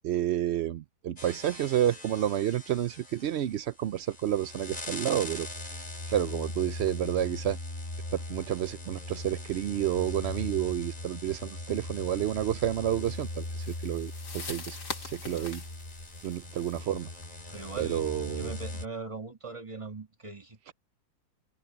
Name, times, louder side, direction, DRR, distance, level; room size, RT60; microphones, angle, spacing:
voice 1, 0.0-5.8 6.1-7.6 8.1-15.6 16.2-17.1 17.8-18.6 20.7-20.8, right 11 dB, 80° right, 0.5 m, -30 dB
sound 1, 1.2-18.9, left 2 dB, 25° left, 3.1 m, -40 dB
sound 2, 13.0-17.9, left 4 dB, 80° left, 3.0 m, -44 dB
voice 2, 17.5-20.7, right 4 dB, 20° right, 1.8 m, -40 dB
omnidirectional pair, 1.8 m